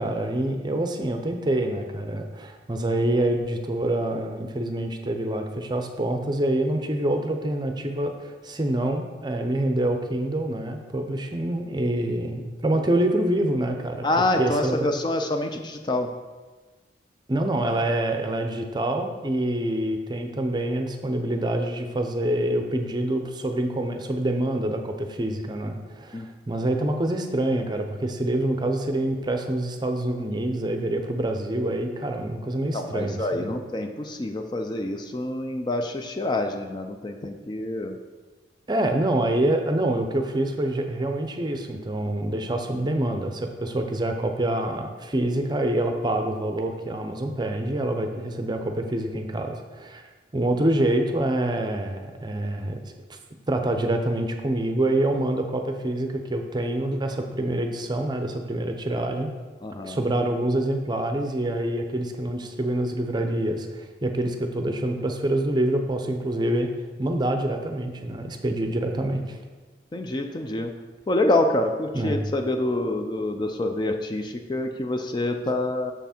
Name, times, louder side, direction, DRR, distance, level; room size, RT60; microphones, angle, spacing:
voice 1, 0.0-14.1 14.4-14.9 17.3-33.6 38.7-50.0 50.3-52.8 53.1-53.2 53.5-59.3 59.8-66.7 67.0-69.4 71.9-72.2, right 1 dB, 25° right, 5 dB, 0.6 m, -26 dB
voice 2, 14.0-16.1 26.1-26.3 32.7-38.0 59.6-60.0 69.9-70.7 71.1-75.9, left 2 dB, 25° left, 5 dB, 0.4 m, -26 dB
6.9 x 5.8 x 4.3 m, 1.3 s
head